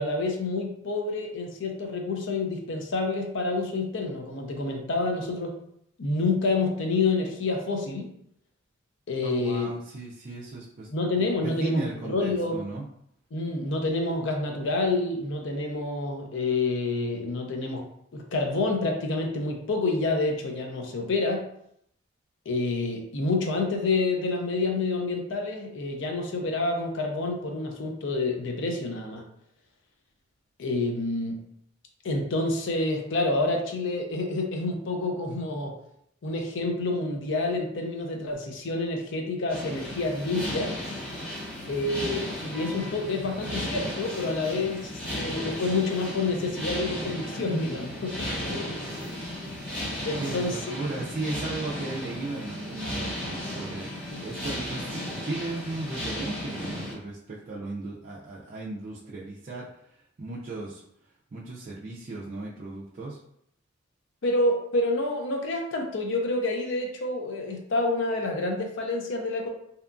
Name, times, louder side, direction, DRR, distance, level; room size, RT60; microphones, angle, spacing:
voice 1, 0.0-5.6 6.0-8.1 9.1-9.7 10.9-12.6 13.3-17.8 18.1-21.5 22.5-29.2 30.6-31.4 32.0-35.7 36.2-40.7 41.7-44.9 45.2-48.7 50.0-50.6 54.1-54.2 64.2-69.5, left 2 dB, 65° left, 2 dB, 0.5 m, -28 dB
voice 2, 9.2-10.9 11.2-12.8 48.2-48.4 48.7-48.8 50.1-59.7 60.2-60.8 61.3-63.2, right 2 dB, 40° right, -6 dB, 0.4 m, -36 dB
sound 1, 39.5-56.9, left 1 dB, 5° left, 1.1 m, -35 dB
2.7 x 2.3 x 2.4 m, 0.72 s
head